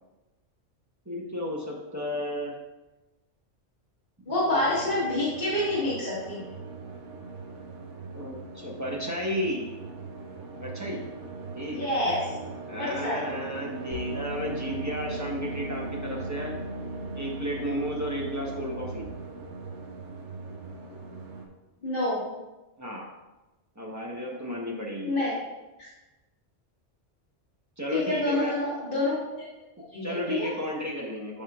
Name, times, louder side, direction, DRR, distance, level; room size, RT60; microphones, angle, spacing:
voice 1, 1.1-2.5 4.5-4.6 8.1-9.7 10.6-11.0 11.5-11.9 12.7-16.5 17.1-19.1 22.8-23.1 23.8-25.1 27.8-28.5 30.0-31.4, equal, 15° right, -2 dB, 1.1 m, -33 dB
voice 2, 4.3-6.4 11.7-12.2 12.8-13.2 21.8-22.2 25.0-25.3 25.8-25.9 27.9-29.1 29.9-30.5, left 2 dB, 45° left, -10 dB, 2.0 m, -27 dB
sound 1, 4.6-21.5, right 4 dB, 75° right, 1.3 m, -40 dB
sound 2, 13.9-19.2, equal, 35° right, 2.2 m, -39 dB
12.5 x 4.3 x 2.5 m, 1.1 s
omnidirectional pair, 1.2 m